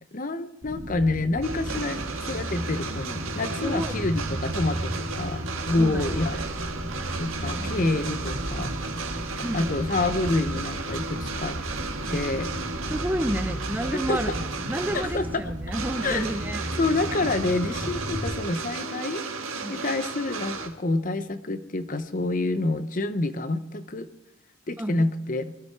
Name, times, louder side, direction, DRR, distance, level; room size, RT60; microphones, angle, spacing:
voice 1, 0.1-6.4 7.2-8.7 9.5-11.6 12.1-12.5 13.9-14.3 14.9-15.2 16.0-16.3 16.8-19.2 19.7-24.1 24.7-25.5, left 2 dB, 40° left, 11 dB, 0.9 m, -27 dB
sound 1, 0.6-18.4, equal, 65° right, 2.1 m, -34 dB
sound 2, 1.4-20.7, right 4 dB, 85° right, 1.8 m, -34 dB
voice 2, 3.6-4.0 5.6-6.4 7.5-7.9 9.3-9.8 12.9-14.3 14.7-16.6 19.6-19.8 24.8-24.9, right 1 dB, 10° right, 10 dB, 0.6 m, -31 dB
22.0 x 13.0 x 4.7 m, 0.90 s
head